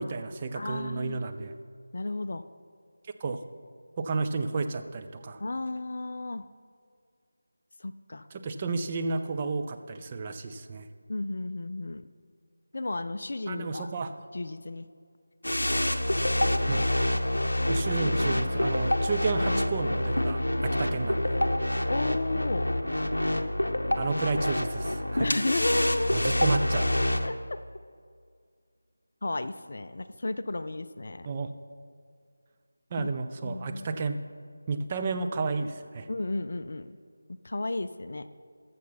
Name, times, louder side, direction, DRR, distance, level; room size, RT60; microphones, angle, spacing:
voice 1, 0.0-1.5 3.2-3.4 4.0-5.4 8.3-10.9 13.5-14.1 16.7-16.8 17.7-21.3 24.0-25.4 26.1-26.9 31.2-31.5 32.9-34.2 34.7-36.1, right 4 dB, 20° right, 6 dB, 0.4 m, -32 dB
voice 2, 0.6-1.3 1.9-2.4 5.4-6.4 7.8-8.3 11.1-12.1 12.7-13.9 14.3-14.9 21.9-22.7 25.2-26.3 27.2-27.3 29.2-31.3 33.0-33.1 33.4-33.9 36.1-36.9 37.4-38.3, left 2 dB, 45° left, 11 dB, 0.4 m, -33 dB
sound 1, 15.4-27.3, left 1 dB, 70° left, 0.7 m, -27 dB
14.0 x 6.8 x 4.2 m, 2.1 s
figure-of-eight pair, 165°, 0 cm